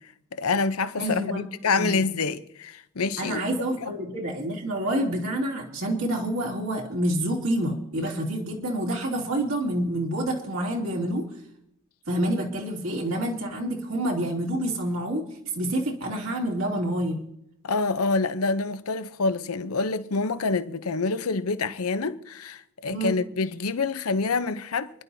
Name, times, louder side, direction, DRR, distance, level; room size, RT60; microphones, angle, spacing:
voice 1, 0.3-3.4 3.8-3.9 17.6-24.9, left 4 dB, 90° left, 0.7 m, -27 dB
voice 2, 1.0-1.5 1.8-2.0 3.2-11.2 12.1-15.2 15.5-17.2 22.9-23.1, right 1 dB, 70° right, 2.8 m, -28 dB
29.0 x 11.0 x 2.7 m
head